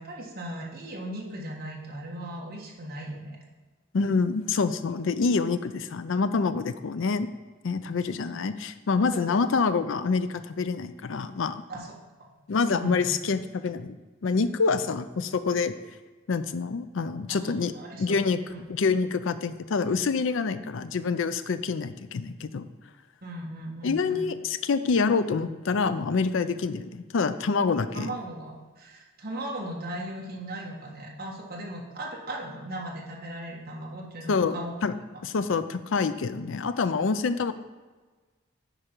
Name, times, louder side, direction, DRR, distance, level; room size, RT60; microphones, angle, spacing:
voice 1, 0.0-3.4 9.1-9.2 11.7-11.9 12.2-12.3 12.7-13.0 17.3-18.6 23.2-24.3 27.9-34.7, right 1 dB, 45° right, -2 dB, 1.5 m, -38 dB
voice 2, 3.9-7.3 7.6-11.6 12.5-14.0 14.2-15.8 16.3-17.7 18.0-18.4 18.7-22.7 23.8-28.1 34.3-34.6 34.8-34.9 35.2-37.5, left 4 dB, 65° left, 12 dB, 0.5 m, -26 dB
9.9 x 5.1 x 4.5 m, 1.3 s
head